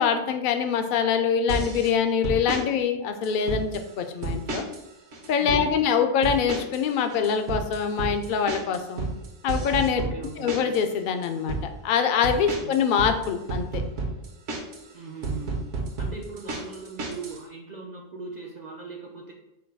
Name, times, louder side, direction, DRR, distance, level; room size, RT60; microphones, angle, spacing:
voice 1, 0.0-4.7 5.3-9.1 9.4-10.0 10.4-11.6 11.8-13.8, left 7 dB, 65° left, 6 dB, 0.5 m, -24 dB
sound 1, 1.5-1.9 2.2-2.6 3.2-3.9 4.2-4.8 5.1-5.6 6.2-6.8 7.1-10.9 11.2-11.7 12.2-14.8 15.2-17.4, right 3 dB, 75° right, 1.2 m, -31 dB
voice 2, 5.4-5.8 9.9-10.6 12.5-12.8 14.9-19.3, right 4 dB, 50° right, 0 dB, 0.5 m, -39 dB
4.6 x 2.2 x 4.6 m, 0.89 s
omnidirectional pair, 1.3 m